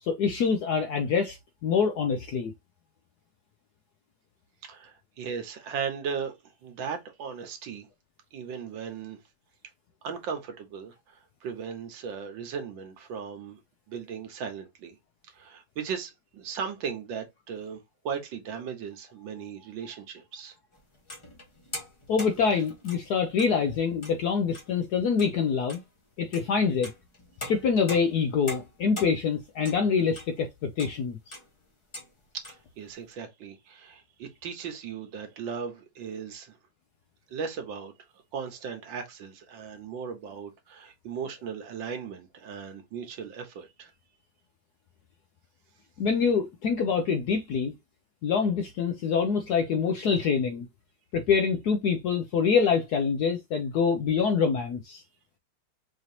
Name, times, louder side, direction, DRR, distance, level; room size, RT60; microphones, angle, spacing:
voice 1, 0.0-2.5 22.1-25.8 26.2-26.9 27.5-31.3 46.0-47.7 48.2-50.7 51.1-55.0, left 6 dB, 70° left, 0.9 m, -25 dB
voice 2, 4.6-7.9 8.3-9.2 10.0-13.6 13.9-15.0 15.3-20.5 32.3-36.6 37.3-37.9 38.3-43.9, right 6 dB, 70° right, 1.6 m, -37 dB
sound 1, 20.7-23.6 23.9-24.2 24.5-24.9 25.2-25.4 25.7-25.8 26.3-30.4 30.8-31.0 31.3-31.5 31.9-32.1 32.4-32.6 33.1-33.2, left 2 dB, 25° left, 0.6 m, -42 dB
4.9 x 2.9 x 2.7 m
omnidirectional pair, 2.3 m